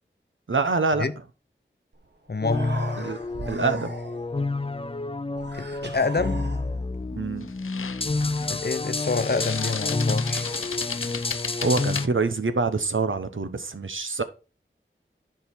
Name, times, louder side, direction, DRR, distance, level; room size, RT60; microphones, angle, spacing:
voice 1, 0.5-1.0 3.0-3.2 3.4-3.9 7.2-7.5 11.6-14.2, right 3 dB, 75° right, 1.0 m, -25 dB
Human voice, 1.9-2.0 2.3-4.4 5.3-7.0, right 2 dB, 55° right, 1.3 m, -39 dB
voice 2, 2.3-2.7 5.5-6.4 8.5-10.5, left 4 dB, 55° left, 0.8 m, -27 dB
sound 1, 2.4-12.1, left 3 dB, 30° left, 0.5 m, -29 dB
sound 2, 5.7-6.0 7.4-12.1, left 6 dB, 90° left, 0.4 m, -35 dB
10.5 x 4.8 x 4.5 m
wide cardioid pair, 45°, 21 cm